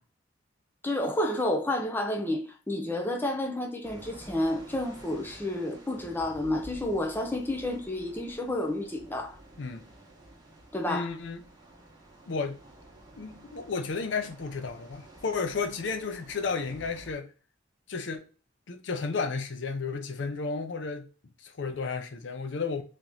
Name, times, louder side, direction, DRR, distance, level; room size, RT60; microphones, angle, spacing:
voice 1, 0.8-9.4 10.7-11.1, left 1 dB, 10° left, 0.6 m, -30 dB
sound 1, 3.8-17.1, right 1 dB, 20° right, 1.2 m, -51 dB
voice 2, 10.9-11.4 12.3-12.6 13.2-17.3 17.9-18.3 18.7-21.1 21.4-22.8, left 4 dB, 65° left, 0.5 m, -33 dB
3.4 x 2.9 x 3.8 m
head